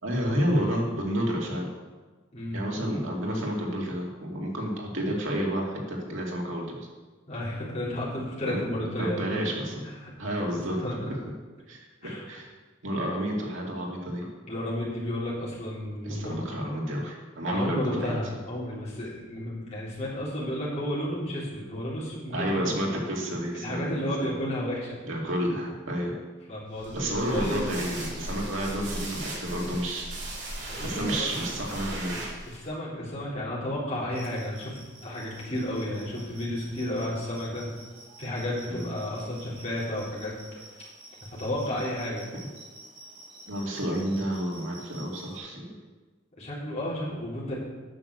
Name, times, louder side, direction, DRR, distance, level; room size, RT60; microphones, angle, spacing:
voice 1, 0.0-1.7 2.5-6.8 8.5-8.6 9.0-9.8 10.2-11.0 11.7-12.5 12.8-14.3 16.0-18.2 22.3-24.3 25.0-26.1 26.9-30.1 30.8-32.2 38.7-38.9 42.3-42.4 43.5-45.7, equal, 80° right, -2 dB, 2.6 m, -30 dB
voice 2, 7.3-9.5 9.8-10.1 10.4-11.1 12.0-12.2 14.5-16.4 17.5-22.7 23.5-25.0 26.5-27.8 30.7-31.3 32.4-37.7 38.2-40.3 41.3-42.2 46.4-47.5, left 1 dB, 35° left, -7 dB, 3.9 m, -32 dB
sound 1, 26.8-32.7, right 1 dB, 65° right, 3.3 m, -37 dB
sound 2, 34.1-45.4, right 2 dB, 30° right, 2.2 m, -49 dB
9.4 x 6.7 x 7.0 m, 1.3 s
head